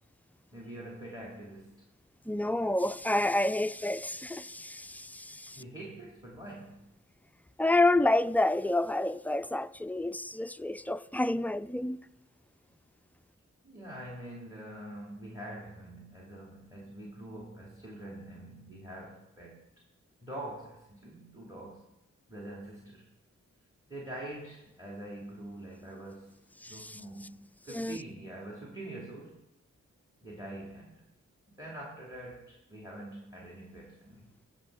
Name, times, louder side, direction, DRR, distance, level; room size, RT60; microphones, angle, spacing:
voice 1, 0.5-1.8 5.6-6.9 13.6-19.6 20.2-21.9 22.3-23.1 23.9-26.4 26.7-29.4 30.2-31.1 31.6-34.3, right 1 dB, 10° right, 2.7 m, -45 dB
voice 2, 2.3-5.6 7.6-12.0 26.6-27.0 27.7-28.0, left 2 dB, 5° left, 0.3 m, -29 dB
15.5 x 5.9 x 3.9 m
cardioid pair, 45°, 32 cm